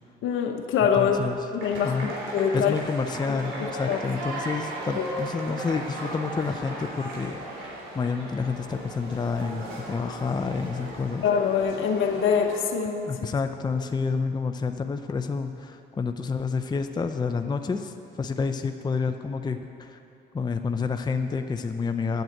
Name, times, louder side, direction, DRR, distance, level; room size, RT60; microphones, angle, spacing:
voice 1, 0.2-1.2 1.5-2.7 3.3-3.4 3.9-4.0 5.0-5.1 11.2-13.0, left 7 dB, 80° left, 4 dB, 0.9 m, -24 dB
voice 2, 1.0-1.5 1.8-2.1 2.5-11.2 13.1-20.0 20.3-22.2, left 4 dB, 20° left, 7 dB, 0.5 m, -29 dB
sound 1, 1.6-12.6, right 1 dB, 70° right, 3.4 m, -36 dB
9.3 x 7.9 x 8.8 m, 2.8 s
cardioid pair, 90°, 20 cm